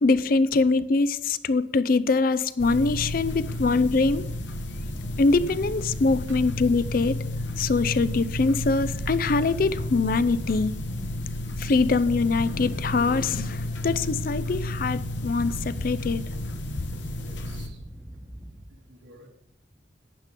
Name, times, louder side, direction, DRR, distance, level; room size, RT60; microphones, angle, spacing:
voice 1, 0.0-4.3 5.2-7.2 7.6-10.7 11.6-16.2, left 3 dB, 50° left, 16 dB, 0.5 m, -23 dB
sound 1, 2.6-17.7, left 1 dB, 75° left, 1.4 m, -32 dB
voice 2, 5.9-6.4 11.4-11.8 17.1-17.8 18.7-19.3, right 2 dB, 85° right, 2 dB, 2.2 m, -52 dB
sound 2, 8.1-18.7, equal, 15° right, 1.0 m, -46 dB
11.5 x 9.8 x 3.8 m, 0.84 s
head